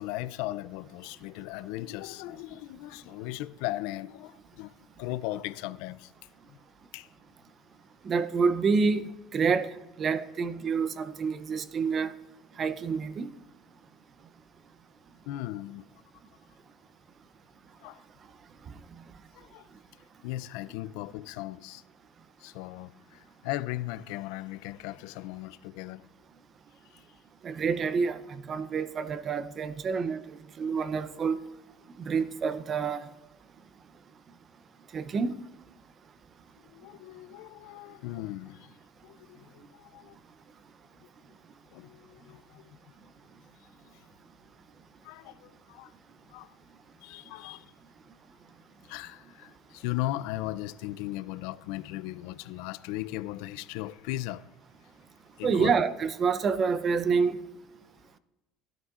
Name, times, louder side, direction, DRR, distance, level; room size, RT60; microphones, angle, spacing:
voice 1, 0.0-6.1 6.5-6.6 6.9-7.1 15.3-15.8 17.8-18.0 19.4-19.7 20.2-21.8 22.4-26.1 26.9-27.0 36.7-38.7 39.0-40.2 41.7-42.8 43.9-44.0 45.0-45.9 46.3-46.5 47.0-47.7 48.8-54.5 55.4-55.7, left 16 dB, 80° left, 0.4 m, -37 dB
voice 2, 8.0-12.1 12.6-13.3 27.4-30.2 30.6-31.4 32.0-33.0 34.9-35.3 55.4-57.4, right 5 dB, 35° right, 0.6 m, -28 dB
17.5 x 12.5 x 2.4 m
cardioid pair, 145°, 0 cm